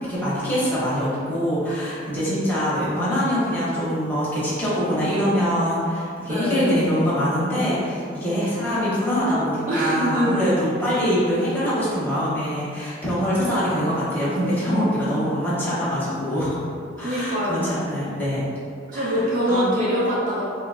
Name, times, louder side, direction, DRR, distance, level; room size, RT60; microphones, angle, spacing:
voice 1, 0.0-16.5 17.0-18.4 18.9-19.2 19.5-19.6, equal, 10° left, -10 dB, 1.0 m, -24 dB
voice 2, 6.3-6.7 9.7-10.4 17.0-17.7 18.9-20.4, equal, 45° right, -6 dB, 0.5 m, -23 dB
2.9 x 2.2 x 3.7 m, 2.3 s
head